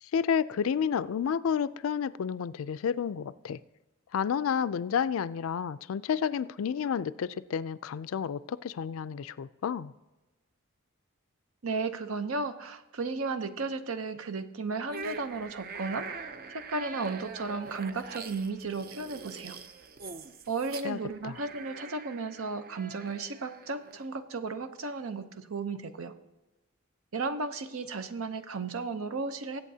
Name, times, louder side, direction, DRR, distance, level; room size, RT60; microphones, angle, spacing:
voice 1, 0.0-3.6 4.1-9.9 20.8-21.0 21.2-21.4, left 7 dB, 75° left, 16 dB, 0.4 m, -30 dB
voice 2, 11.6-16.2 16.5-19.6 20.5-26.1 27.1-29.6, right 4 dB, 80° right, 10 dB, 0.8 m, -34 dB
sound 1, 14.9-24.1, right 4 dB, 45° right, 0.5 m, -44 dB
21.0 x 8.3 x 2.8 m, 1.1 s
head